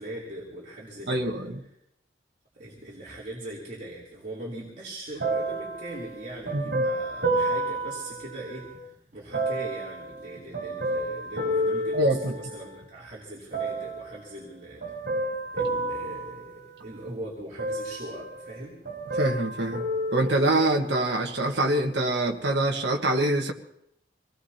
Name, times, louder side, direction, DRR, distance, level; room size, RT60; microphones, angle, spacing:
voice 1, 0.0-1.5 2.5-15.0 15.5-18.8, right 1 dB, 45° right, -5 dB, 3.6 m, -40 dB
voice 2, 1.1-1.6 6.5-6.8 11.9-12.3 19.2-19.9 20.1-23.5, right 1 dB, 90° right, 1 dB, 1.5 m, -25 dB
sound 1, 5.2-8.8 9.3-12.8 13.5-14.2 14.8-17.1 17.6-18.6 18.8-20.9 21.6-21.7, right 1 dB, 70° right, 3.1 m, -31 dB
26.0 x 19.0 x 2.9 m, 0.79 s
head